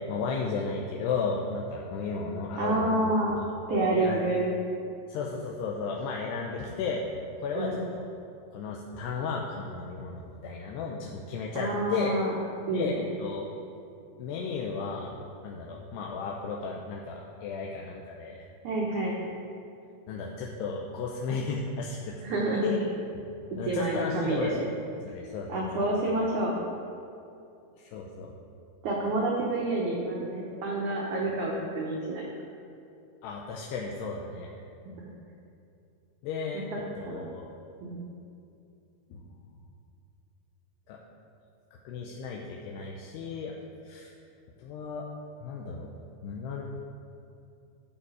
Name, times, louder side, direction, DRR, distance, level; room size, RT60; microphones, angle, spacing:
voice 1, 0.0-3.4 3.7-4.2 5.1-8.1 8.5-12.2 12.7-13.5 14.2-18.4 20.1-22.9 23.6-24.7 25.0-25.7 27.9-28.3 33.2-34.5 36.2-37.5 39.1-39.2 40.9-41.0 41.8-43.5 43.8-44.1 44.6-45.1 45.4-45.9 46.2-46.6, left 4 dB, 80° left, -1 dB, 2.7 m, -34 dB
voice 2, 2.6-3.4 3.7-4.5 7.6-7.8 11.6-12.3 12.7-13.0 18.6-19.2 22.2-22.7 23.6-24.5 25.5-26.6 28.8-32.3 36.5-36.6 37.0-37.3 37.8-38.0, right 2 dB, 90° right, -3 dB, 1.6 m, -28 dB
13.5 x 5.6 x 4.8 m, 2.6 s
omnidirectional pair, 4.9 m